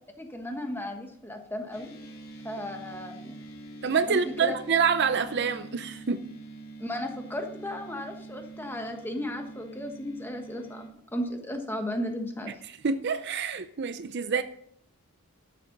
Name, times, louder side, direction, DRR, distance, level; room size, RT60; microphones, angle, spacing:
voice 1, 0.2-1.9 2.4-3.4 4.1-4.5 6.8-12.5, left 1 dB, 10° left, 1.3 m, -35 dB
sound 1, 1.7-10.9, right 2 dB, 70° left, 2.5 m, -45 dB
voice 2, 3.8-6.3 12.7-14.4, right 5 dB, 50° right, 0.5 m, -27 dB
12.5 x 7.5 x 5.3 m
head